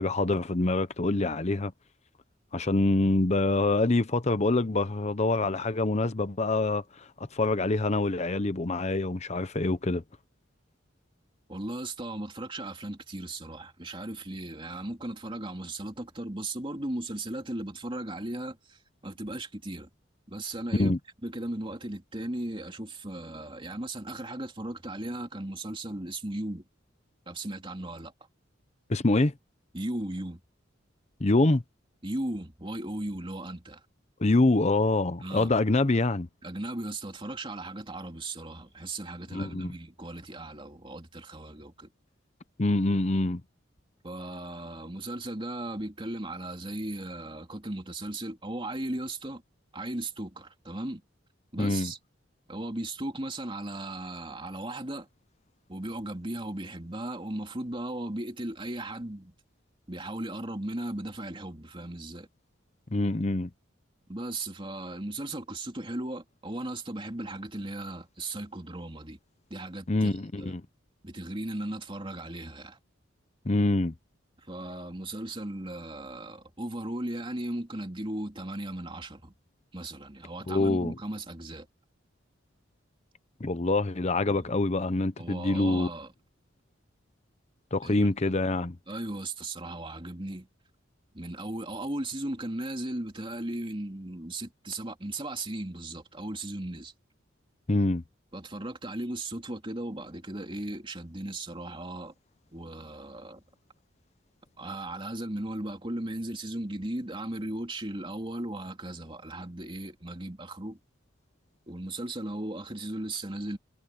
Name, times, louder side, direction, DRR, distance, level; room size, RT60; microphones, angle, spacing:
voice 1, 0.0-1.7 2.5-10.0 20.8-21.0 28.9-29.3 31.2-31.6 34.2-36.3 39.3-39.7 42.6-43.4 51.6-51.9 62.9-63.5 69.9-70.6 73.4-73.9 80.5-80.9 83.4-85.9 87.7-88.8 97.7-98.0, left 2 dB, 35° left, 0.8 m, -25 dB
voice 2, 11.5-19.9 20.3-20.9 21.2-26.6 27.3-28.1 29.7-30.4 32.0-33.8 35.2-35.5 36.4-41.9 44.0-49.4 49.7-51.0 51.5-52.0 52.5-55.1 55.7-59.3 59.9-62.3 64.1-69.2 69.5-70.5 71.0-72.8 74.4-79.3 79.7-81.7 84.3-84.5 85.2-86.1 87.8-88.1 88.9-90.5 91.1-96.9 98.3-102.1 102.5-103.4 104.6-110.8 111.7-113.6, right 1 dB, 25° right, 3.2 m, -36 dB
head